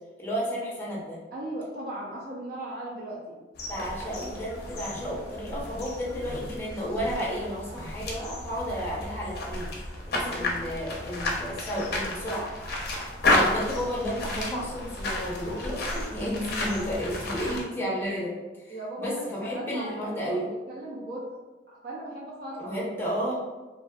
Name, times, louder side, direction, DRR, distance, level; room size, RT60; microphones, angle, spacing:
voice 1, 0.2-1.2 3.7-9.7 10.1-12.5 12.8-20.5 22.6-23.3, equal, 10° left, -6 dB, 0.6 m, -32 dB
voice 2, 1.3-3.2 10.2-10.5 15.6-15.7 18.7-21.2 21.7-22.8, right 1 dB, 55° right, -5 dB, 0.5 m, -37 dB
sound 1, 3.6-17.6, left 2 dB, 60° left, 0.5 m, -32 dB
2.5 x 2.3 x 2.2 m, 1.2 s
head